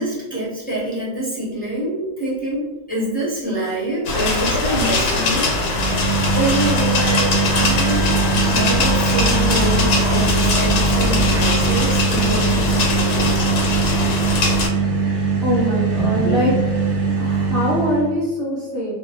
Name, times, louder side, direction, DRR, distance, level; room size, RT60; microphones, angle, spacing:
voice 1, 0.0-13.3, right 1 dB, 10° left, -9 dB, 0.5 m, -26 dB
sound 1, 4.1-14.7, left 2 dB, 85° left, 1.0 m, -21 dB
sound 2, 5.5-18.1, right 4 dB, 65° right, 0.8 m, -21 dB
Bowed string instrument, 6.3-12.1, left 5 dB, 60° left, 0.7 m, -38 dB
voice 2, 15.4-16.7 17.2-18.9, equal, 30° right, -10 dB, 0.7 m, -22 dB
2.2 x 2.1 x 2.7 m, 1.2 s
omnidirectional pair, 1.4 m